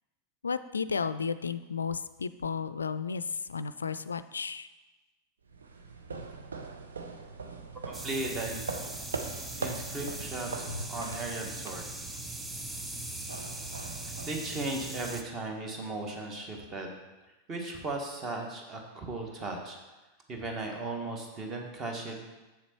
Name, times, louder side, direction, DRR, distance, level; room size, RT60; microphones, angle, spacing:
voice 1, 0.4-4.7, left 5 dB, 75° left, 14 dB, 0.3 m, -33 dB
sound 1, 5.5-15.1, right 4 dB, 70° right, 0.7 m, -41 dB
sound 2, 7.9-15.2, right 2 dB, 10° right, 0.6 m, -40 dB
voice 2, 7.9-8.6 8.9-9.1 9.6-11.9 14.3-16.9 17.5-19.8 20.3-22.3, right 2 dB, 25° right, 2 dB, 1.5 m, -36 dB
7.6 x 6.9 x 4.5 m, 1.1 s
figure-of-eight pair, 90°, 0 cm